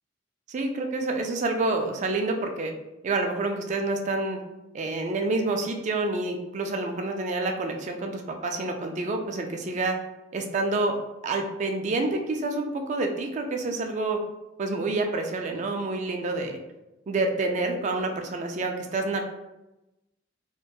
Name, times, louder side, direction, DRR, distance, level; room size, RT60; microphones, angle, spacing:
voice 1, 0.5-2.7 3.0-4.4 4.7-10.0 10.3-11.0 11.2-14.2 14.6-16.6 17.1-19.2, right 2 dB, 40° right, 4 dB, 0.3 m, -28 dB
2.7 x 2.1 x 2.2 m, 0.97 s
head